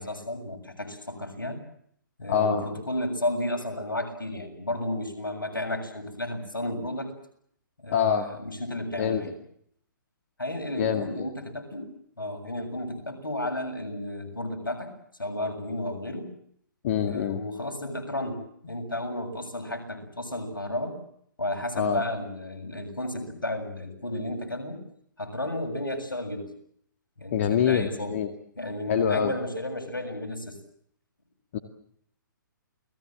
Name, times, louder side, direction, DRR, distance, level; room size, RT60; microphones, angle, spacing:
voice 1, 0.0-1.6 2.2-7.1 7.8-9.4 10.4-11.9 12.2-14.9 15.2-16.3 17.0-21.0 21.4-24.8 25.2-26.5 27.2-28.2 28.6-30.6, left 1 dB, 80° left, 5 dB, 7.2 m, -33 dB
voice 2, 2.3-2.6 7.9-8.3 9.0-9.2 10.8-11.3 16.8-17.4 21.8-22.0 27.3-28.3 28.9-29.3 31.5-31.6, left 8 dB, 40° left, 7 dB, 2.1 m, -25 dB
29.5 x 20.0 x 7.7 m, 0.68 s
figure-of-eight pair, 125°, 11 cm